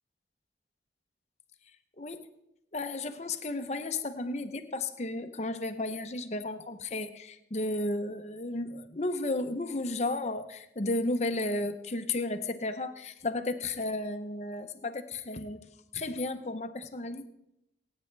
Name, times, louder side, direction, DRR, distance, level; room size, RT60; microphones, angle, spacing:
voice 1, 2.0-2.3 2.7-15.6 15.9-17.3, left 2 dB, 40° left, 9 dB, 0.8 m, -33 dB
24.0 x 9.1 x 3.3 m, 0.84 s
head